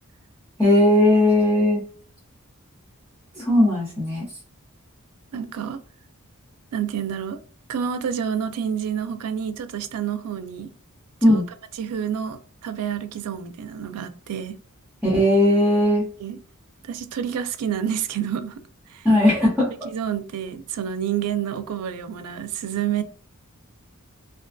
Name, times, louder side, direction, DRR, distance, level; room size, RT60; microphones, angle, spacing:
voice 1, 0.6-1.8 3.4-4.2 11.2-11.4 15.0-16.1 19.0-19.7, left 1 dB, 5° right, 0.9 m, -18 dB
voice 2, 5.3-5.8 6.7-7.4 7.7-10.7 11.3-11.4 11.8-14.6 16.2-16.4 16.8-18.6 18.9-19.1 19.8-23.0, right 8 dB, 75° right, 0.4 m, -28 dB
2.4 x 2.2 x 2.5 m
head